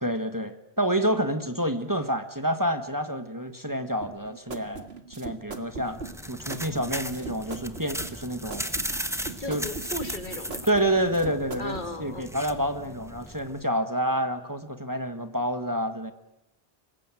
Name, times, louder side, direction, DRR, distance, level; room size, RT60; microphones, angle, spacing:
voice 1, 0.0-6.0 6.3-8.7 9.5-9.6 10.7-16.1, equal, 20° right, 8 dB, 1.5 m, -28 dB
sound 1, 4.0-11.9, right 4 dB, 70° right, 2.2 m, -40 dB
sound 2, 5.7-13.6, equal, 5° right, 1.2 m, -37 dB
voice 2, 9.4-10.7 11.6-12.3, left 2 dB, 50° left, 9 dB, 1.8 m, -36 dB
26.0 x 21.0 x 9.0 m, 0.91 s
omnidirectional pair, 1.1 m